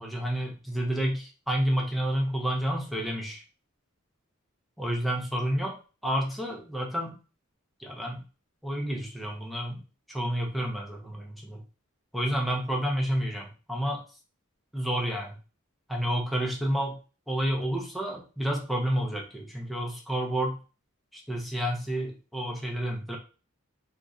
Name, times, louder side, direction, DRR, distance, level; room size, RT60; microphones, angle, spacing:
voice 1, 0.0-3.4 4.8-5.8 6.0-7.2 7.8-8.2 8.6-9.8 10.1-11.6 12.1-14.0 14.7-15.4 15.9-17.0 17.3-20.6 21.1-23.2, equal, ahead, -1 dB, 0.5 m, -30 dB
3.0 x 2.3 x 2.5 m, 0.34 s
head